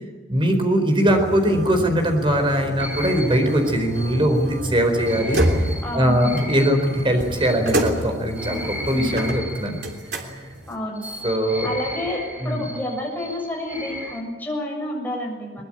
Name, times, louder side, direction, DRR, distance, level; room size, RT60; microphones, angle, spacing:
voice 1, 0.3-9.8 10.2-10.5 11.2-11.7 12.4-12.7, equal, 30° right, 5 dB, 4.4 m, -21 dB
sound 1, 1.1-10.7, equal, 65° right, 3.3 m, -29 dB
sound 2, 2.8-10.3 10.9-14.2, equal, 10° right, 3.3 m, -36 dB
voice 2, 5.8-6.5 8.4-9.1 10.7-11.1 11.6-15.6, left 1 dB, 10° left, 0 dB, 7.1 m, -30 dB
22.5 x 21.0 x 8.9 m, 1.2 s
head